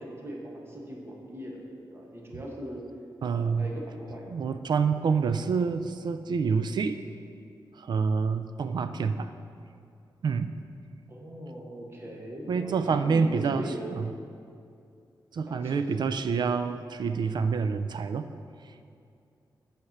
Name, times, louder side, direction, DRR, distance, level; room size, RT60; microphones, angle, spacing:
voice 1, 0.0-2.8 3.3-4.3 8.6-9.0 11.1-14.1 15.5-15.9, right 1 dB, 30° right, -1 dB, 1.2 m, -40 dB
voice 2, 3.2-3.7 4.3-7.0 7.7-9.3 10.2-10.5 12.5-13.6 13.9-14.1 15.3-18.3, right 5 dB, 60° right, 10 dB, 0.4 m, -27 dB
8.0 x 4.4 x 7.2 m, 2.4 s
wide cardioid pair, 175°, 8 cm